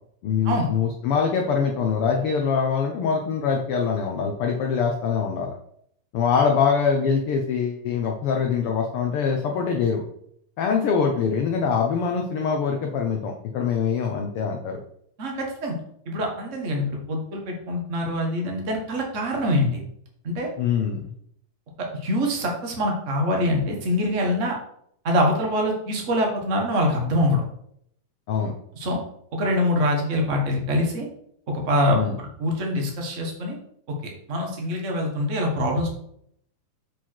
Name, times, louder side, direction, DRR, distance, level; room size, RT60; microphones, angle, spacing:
voice 1, 0.2-5.6 6.1-10.0 10.6-14.8 20.6-21.1 28.3-28.5 31.9-32.2, left 6 dB, 80° left, 2 dB, 1.2 m, -24 dB
voice 2, 15.2-15.7 16.1-19.8 20.2-20.5 21.8-24.6 25.0-27.4 28.7-29.0 29.3-31.1 31.5-33.6 34.3-35.9, left 1 dB, 40° right, 0 dB, 1.1 m, -24 dB
7.4 x 4.6 x 4.5 m, 0.70 s
omnidirectional pair, 3.5 m